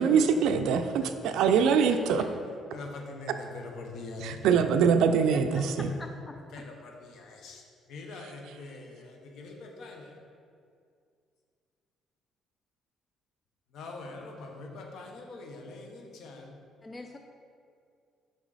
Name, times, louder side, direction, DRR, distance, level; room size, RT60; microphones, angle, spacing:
voice 1, 0.0-2.2 4.2-5.9, right 6 dB, 80° right, 0.4 m, -24 dB
voice 2, 2.7-4.2 6.5-7.6 7.9-10.1 13.7-16.5, left 3 dB, 65° left, 1.0 m, -43 dB
voice 3, 5.3-5.7 6.0-6.7 16.8-17.2, left 2 dB, 20° left, 0.3 m, -45 dB
6.2 x 5.4 x 4.0 m
cardioid pair, 145°, 0 cm